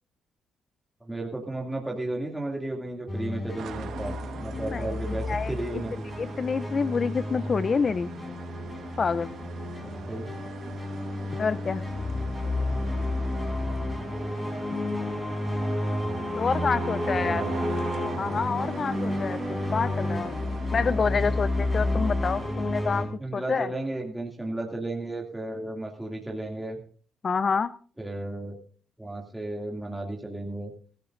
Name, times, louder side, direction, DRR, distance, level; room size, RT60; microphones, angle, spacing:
voice 1, 1.0-6.2 9.8-10.3 17.0-17.6 23.2-26.8 28.0-28.6 29.0-30.7, right 2 dB, 10° right, 0 dB, 2.5 m, -34 dB
sound 1, 3.1-23.1, left 1 dB, 15° left, 5.3 m, -31 dB
sound 2, 3.6-22.5, right 8 dB, 70° right, 1.4 m, -43 dB
voice 2, 4.5-5.0 5.3-5.5 6.2-8.1 9.0-9.3 11.4-11.8 16.4-17.4 18.2-20.4 20.7-23.7 27.2-27.7, left 5 dB, 40° left, 15 dB, 0.6 m, -27 dB
23.0 x 13.5 x 2.6 m, 0.43 s
cardioid pair, 90°, 0 cm